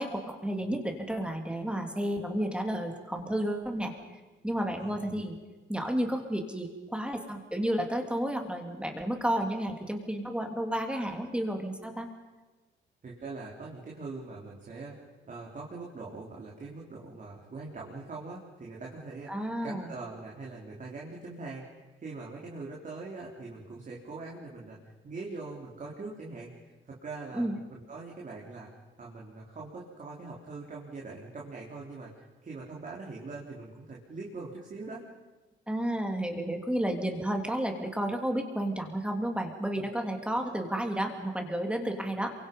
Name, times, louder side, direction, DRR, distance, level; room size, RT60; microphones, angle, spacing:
voice 1, 0.0-3.9 4.4-5.4 5.7-12.1 19.3-19.9 27.3-27.6 35.7-42.3, right 1 dB, 5° right, 3 dB, 3.1 m, -31 dB
voice 2, 4.8-5.2 13.0-24.8 25.0-26.5 26.9-28.7 29.0-35.0 39.8-39.9, right 3 dB, 40° right, -3 dB, 3.9 m, -42 dB
27.0 x 24.0 x 5.5 m, 1.2 s
cardioid pair, 90°, 20 cm